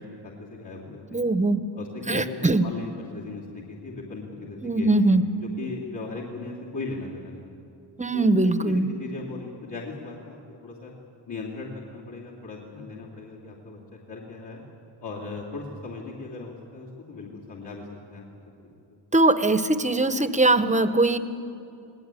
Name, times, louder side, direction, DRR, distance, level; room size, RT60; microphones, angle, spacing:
voice 1, 0.0-1.0 1.7-5.0 5.4-7.6 8.1-8.3 8.6-10.9 11.2-14.6 15.0-18.3 18.6-18.7, left 3 dB, 60° left, -6 dB, 3.0 m, -38 dB
voice 2, 1.1-1.7 2.1-2.6 4.6-5.2 8.0-8.9 19.1-21.2, right 2 dB, 15° right, 11 dB, 0.9 m, -21 dB
20.0 x 18.5 x 9.1 m, 2.7 s
wide cardioid pair, 100°, 46 cm